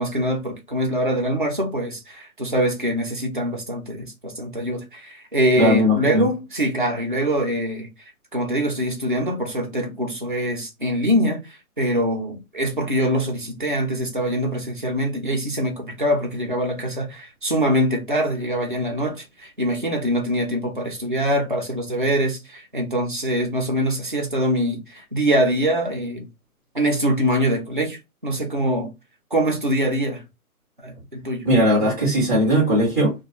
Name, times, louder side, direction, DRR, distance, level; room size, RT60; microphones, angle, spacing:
voice 1, 0.0-7.9 8.3-26.3 26.7-28.9 29.3-30.2 30.8-31.5, equal, 35° right, 0.4 m, -24 dB
voice 2, 5.5-6.2 31.4-33.1, equal, 15° left, 0.8 m, -18 dB
2.4 x 2.2 x 2.8 m
hypercardioid pair, 165°, 45 cm